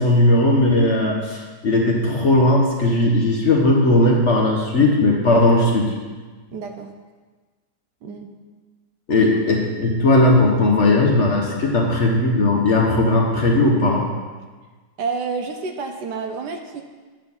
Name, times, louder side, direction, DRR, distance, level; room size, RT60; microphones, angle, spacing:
voice 1, 0.0-5.9 9.1-14.1, left 2 dB, 45° left, -1 dB, 1.1 m, -17 dB
voice 2, 6.5-6.9 8.0-8.3 15.0-16.8, right 4 dB, 70° right, 5 dB, 1.3 m, -29 dB
9.0 x 4.1 x 7.2 m, 1.4 s
omnidirectional pair, 1.9 m